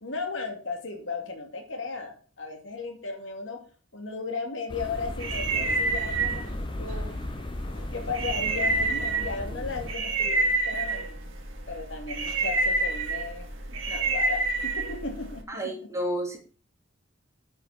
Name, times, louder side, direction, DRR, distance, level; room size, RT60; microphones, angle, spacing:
voice 1, 0.0-3.6 3.9-7.1 7.9-11.2 11.7-13.5 13.9-15.9, left 4 dB, 70° left, 3 dB, 2.5 m, -35 dB
sound 1, 4.7-9.9, left 1 dB, 25° left, 0.8 m, -36 dB
sound 2, 4.8-15.4, right 3 dB, 85° right, 2.5 m, -29 dB
voice 2, 15.5-16.4, right 1 dB, 15° right, -1 dB, 3.1 m, -30 dB
8.8 x 6.3 x 7.0 m, 0.39 s
head